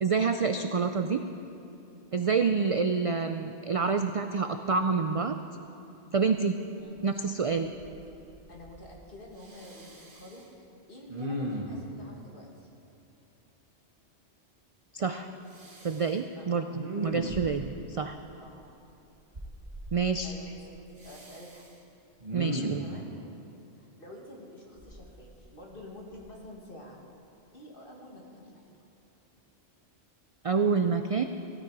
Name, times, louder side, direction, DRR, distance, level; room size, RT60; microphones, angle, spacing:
voice 1, 0.0-1.2 2.1-5.4 6.1-6.6 7.0-7.7 14.9-15.3 15.8-16.7 17.0-18.2 19.9-20.3 22.3-22.8 30.4-31.2, right 5 dB, 55° right, 7 dB, 0.3 m, -27 dB
Respiratory sounds, 7.0-7.1 7.5-8.0 8.3-9.1 9.4-10.4 11.1-11.9 15.5-16.1 16.7-17.8 19.3-20.0 21.0-21.7 22.2-23.0 24.8-25.7 26.1-26.3, equal, 40° right, 1.4 m, -38 dB
voice 2, 8.5-12.7 16.4-16.7 18.4-18.7 20.2-20.8 21.0-21.6 22.6-23.1 23.7-27.0 27.5-28.8, left 1 dB, 50° left, -1 dB, 2.2 m, -48 dB
16.5 x 12.5 x 4.8 m, 2.8 s
omnidirectional pair, 1.1 m